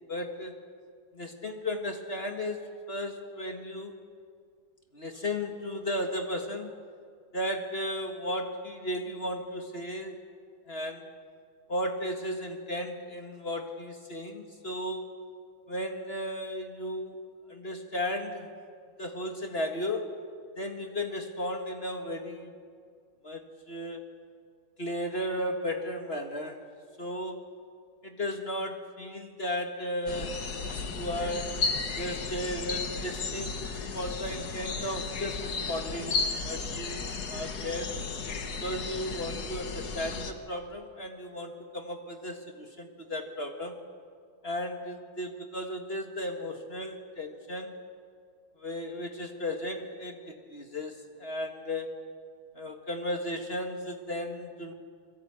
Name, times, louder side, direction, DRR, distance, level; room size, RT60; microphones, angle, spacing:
voice 1, 0.1-0.5 1.1-4.0 4.9-6.7 7.3-10.2 10.7-11.1 11.7-15.1 15.7-17.2 17.5-18.5 19.0-20.1 20.6-22.5 23.2-24.1 24.8-26.7 27.0-27.4 28.0-30.4 30.8-31.5 32.0-37.9 38.6-43.8 44.4-47.7 48.6-51.9 52.5-54.7, left 1 dB, 30° left, 4 dB, 1.8 m, -35 dB
sound 1, 30.1-40.3, left 4 dB, 55° left, 2.0 m, -34 dB
26.0 x 22.0 x 8.6 m, 2.2 s
omnidirectional pair, 2.1 m